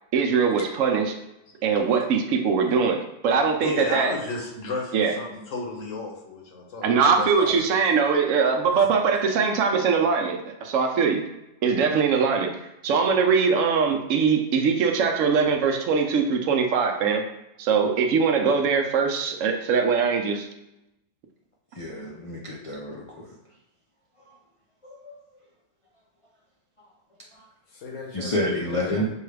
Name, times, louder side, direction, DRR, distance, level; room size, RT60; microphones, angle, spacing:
voice 1, 0.1-1.1 1.6-4.1 4.9-5.1 6.8-11.2 11.6-17.3 17.6-20.5, right 5 dB, 80° right, 4 dB, 1.0 m, -22 dB
voice 2, 3.6-7.8 8.7-8.9 27.7-29.1, left 3 dB, 75° left, 0 dB, 1.2 m, -34 dB
voice 3, 21.8-23.0 24.8-25.1 28.1-29.1, left 1 dB, 45° left, -4 dB, 0.4 m, -28 dB
5.3 x 2.3 x 3.2 m, 0.90 s
omnidirectional pair, 1.3 m